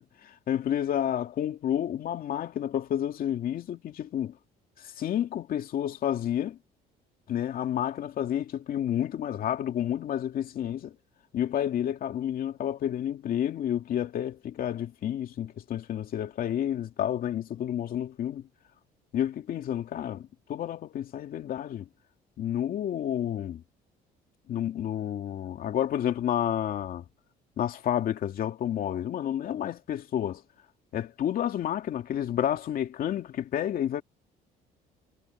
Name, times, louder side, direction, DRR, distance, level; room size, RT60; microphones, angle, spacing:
voice 1, 0.0-4.4 4.8-6.6 7.3-11.0 11.3-18.5 19.1-21.9 22.4-23.6 24.5-27.1 27.6-30.4 30.9-34.0, left 10 dB, 60° left, 2.4 m, -30 dB
cardioid pair, 110°, 17 cm